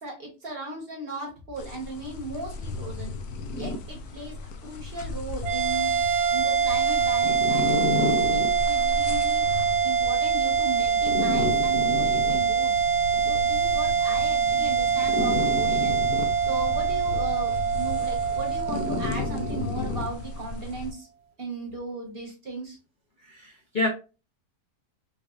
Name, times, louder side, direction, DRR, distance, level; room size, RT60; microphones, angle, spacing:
voice 1, 0.0-3.1 3.5-5.9 6.3-9.4 9.8-12.7 13.3-16.0 16.5-21.1 21.4-22.8, right 2 dB, 40° right, 0 dB, 1.0 m, -37 dB
sound 1, 1.6-20.9, left 3 dB, 70° left, 1.0 m, -33 dB
sound 2, 5.4-20.0, right 6 dB, 85° right, 0.5 m, -24 dB
voice 2, 23.3-23.9, left 2 dB, 45° left, -2 dB, 0.6 m, -28 dB
4.7 x 2.3 x 2.4 m, 0.31 s
omnidirectional pair, 1.7 m